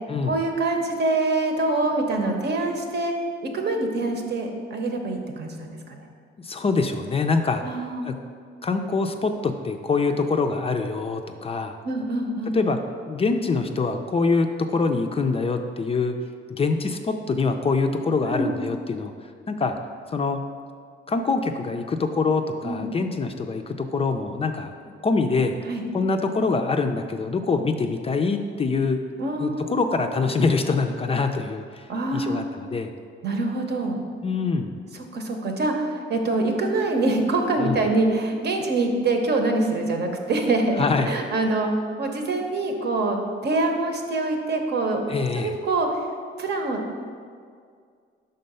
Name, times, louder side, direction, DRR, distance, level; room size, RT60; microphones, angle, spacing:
voice 1, 0.2-3.1 3.4-6.1 7.6-8.1 11.8-12.6 18.3-18.5 22.6-22.9 25.7-25.8 29.2-29.8 31.9-32.4 33.2-34.0 34.9-41.7 42.0-45.0 45.4-46.0 46.4-46.8, right 2 dB, 55° right, 3 dB, 0.8 m, -25 dB
voice 2, 6.4-7.8 8.0-8.1 8.6-11.8 12.5-12.8 13.1-16.2 16.5-19.1 19.5-19.8 20.1-20.4 21.1-24.7 25.0-25.6 25.9-29.0 29.4-31.9 32.1-32.9 34.2-34.7 37.6-37.8 40.8-41.1 45.1-45.5, left 4 dB, 30° left, 6 dB, 0.4 m, -24 dB
5.4 x 3.8 x 5.4 m, 2.1 s
cardioid pair, 90°, 20 cm